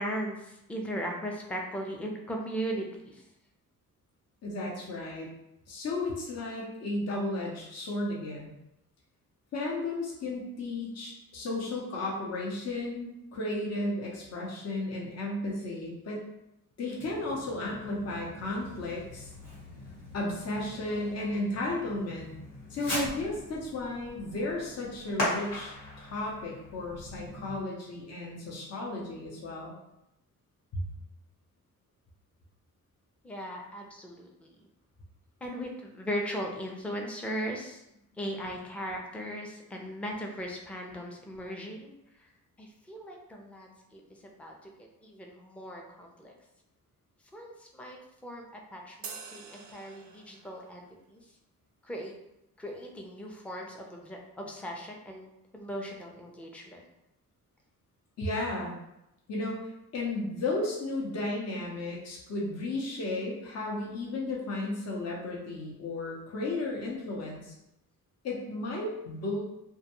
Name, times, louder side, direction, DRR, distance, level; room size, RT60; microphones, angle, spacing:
voice 1, 0.0-3.2 33.2-34.5 35.4-37.8 38.2-41.9 42.6-44.0 44.4-44.7 45.0-46.3 47.3-51.2 51.8-52.2 52.6-55.3 55.5-56.8, equal, 5° left, 1 dB, 0.4 m, -38 dB
voice 2, 4.4-5.3 5.7-8.5 9.5-16.2 16.8-19.3 20.1-22.4 22.7-25.7 26.0-29.7 30.7-30.8 58.2-58.8 59.3-59.7 59.9-67.5 68.2-69.4, left 2 dB, 45° left, -3 dB, 0.7 m, -34 dB
Fireworks, 17.0-27.6, left 1 dB, 80° left, 1.3 m, -40 dB
sound 1, 49.0-50.6, right 6 dB, 55° right, 0.4 m, -45 dB
2.2 x 2.2 x 2.9 m, 0.87 s
cardioid pair, 70°, 36 cm